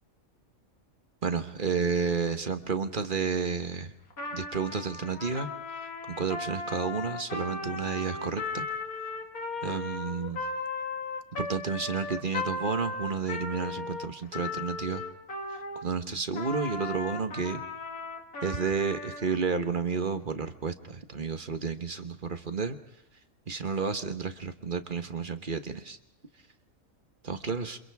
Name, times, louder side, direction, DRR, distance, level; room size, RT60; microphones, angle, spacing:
voice 1, 1.2-3.9 4.3-5.5 5.8-8.7 9.6-10.4 11.4-15.0 15.8-17.6 18.4-22.8 23.5-26.0 27.2-27.8, right 5 dB, 40° right, 9 dB, 1.3 m, -31 dB
Trumpet, 4.1-15.9 16.3-19.3, left 3 dB, 90° left, 2.7 m, -36 dB
29.5 x 27.0 x 3.6 m, 0.82 s
omnidirectional pair, 1.5 m